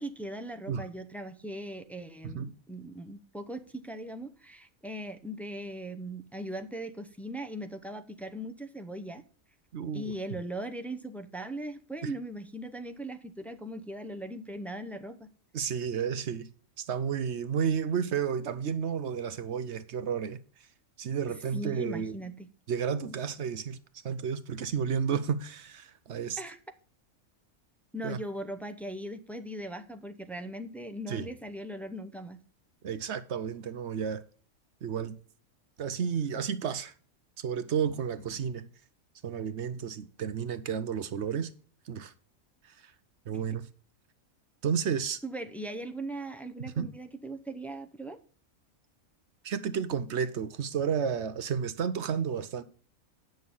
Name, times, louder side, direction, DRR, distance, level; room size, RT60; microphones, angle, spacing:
voice 1, 0.0-9.2 9.9-15.3 21.5-22.5 26.4-26.6 27.9-32.4 45.2-48.2, right 1 dB, ahead, 0.4 m, -39 dB
voice 2, 9.7-10.1 12.0-12.1 15.5-16.5 16.8-20.4 21.0-22.2 22.7-23.8 24.0-26.4 28.0-28.2 31.1-31.3 32.8-34.2 34.8-35.2 35.8-36.9 37.4-38.7 39.2-41.5 41.9-42.1 42.6-42.9 43.3-43.7 44.6-45.2 46.6-46.9 49.4-52.6, right 7 dB, 60° right, 0.9 m, -32 dB
sound 1, 36.0-36.5 37.4-38.5 38.8-38.9 40.6-40.7 40.8-41.3, left 1 dB, 50° left, 4.0 m, -56 dB
9.3 x 6.5 x 5.4 m
omnidirectional pair, 1.5 m